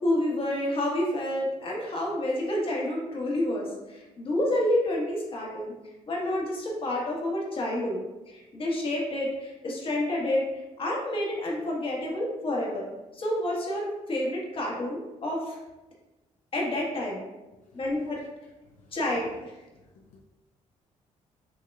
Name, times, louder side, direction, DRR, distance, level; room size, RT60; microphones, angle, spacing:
voice 1, 0.0-5.7 6.1-8.0 8.3-12.8 13.1-15.6 16.5-17.2 17.7-18.2 18.9-19.5, left 1 dB, 45° left, -3 dB, 1.4 m, -29 dB
voice 2, 19.7-20.2, left 3 dB, 85° left, 0 dB, 0.5 m, -58 dB
5.6 x 2.9 x 2.3 m, 1.1 s
cardioid pair, 90°, 13 cm